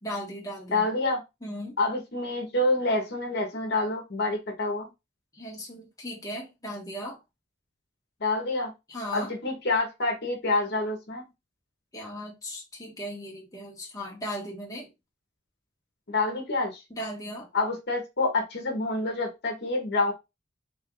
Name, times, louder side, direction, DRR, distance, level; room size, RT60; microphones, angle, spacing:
voice 1, 0.0-0.8 1.4-1.7 5.3-7.2 8.9-9.3 11.9-14.9 16.9-17.5, equal, 20° left, 1.2 m, -37 dB
voice 2, 0.7-1.2 1.8-4.9 8.2-8.7 9.1-11.2 16.1-16.8 17.5-20.1, left 2 dB, 55° left, 1.1 m, -27 dB
3.5 x 2.6 x 3.8 m
head